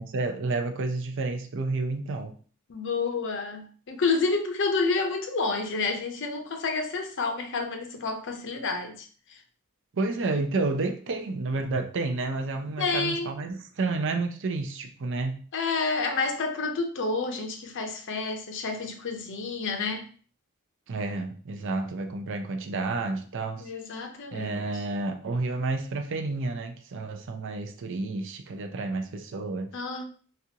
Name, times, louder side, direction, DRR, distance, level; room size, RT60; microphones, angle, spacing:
voice 1, 0.0-2.3 9.9-15.4 20.9-23.7 24.3-29.7, right 3 dB, 60° right, 0.5 m, -30 dB
voice 2, 2.7-9.4 12.8-13.3 15.5-20.1 23.6-24.7 29.7-30.0, left 4 dB, 60° left, 0.6 m, -29 dB
4.1 x 2.4 x 2.8 m
head